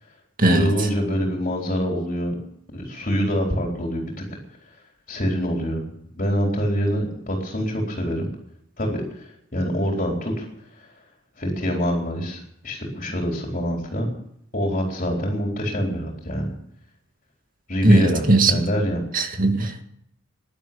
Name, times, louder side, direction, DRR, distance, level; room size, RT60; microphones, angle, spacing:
voice 1, 0.5-2.4 2.7-4.2 5.1-5.8 6.1-8.3 8.8-9.2 9.5-10.5 10.8-10.9 11.4-14.1 14.5-16.5 17.7-19.0, equal, 40° left, 4.0 m, -25 dB
voice 2, 17.8-18.6 19.1-19.8, right 2 dB, 45° right, 2.1 m, -18 dB
17.0 x 11.0 x 7.0 m
head